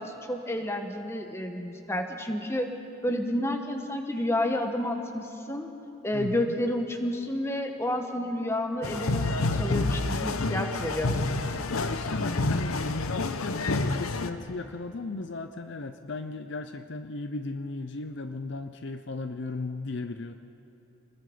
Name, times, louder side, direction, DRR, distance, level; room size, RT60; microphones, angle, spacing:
voice 1, 0.0-2.7 3.0-5.7 6.0-11.1, left 1 dB, 10° left, 5 dB, 1.2 m, -30 dB
voice 2, 6.1-6.6 11.7-20.4, left 3 dB, 55° left, 9 dB, 0.6 m, -36 dB
sound 1, 8.8-14.3, left 2 dB, 80° left, 0.9 m, -28 dB
27.0 x 20.0 x 5.1 m, 3.0 s
head